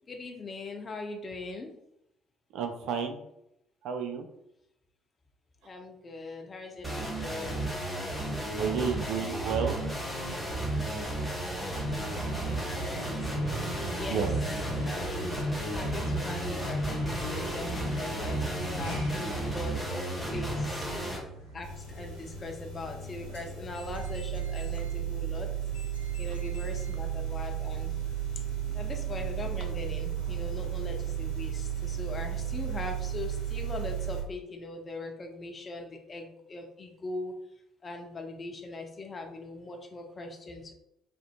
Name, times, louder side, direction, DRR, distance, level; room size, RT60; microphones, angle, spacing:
voice 1, 0.1-1.7 5.6-7.8 12.4-13.0 13.8-14.3 14.8-21.0 21.5-25.5 26.2-27.9 28.7-37.4 37.8-40.7, left 2 dB, 35° left, 3 dB, 0.6 m, -41 dB
voice 2, 2.5-3.2 3.8-4.3 8.5-9.8 14.1-14.3, right 6 dB, 55° right, 5 dB, 0.4 m, -31 dB
sound 1, 6.8-21.2, right 1 dB, ahead, 1.1 m, -33 dB
sound 2, 9.1-23.2, right 1 dB, 80° right, 1.0 m, -40 dB
sound 3, 21.6-34.2, right 9 dB, 80° left, 0.6 m, -34 dB
4.3 x 2.5 x 2.3 m, 0.81 s
figure-of-eight pair, 50°, 0 cm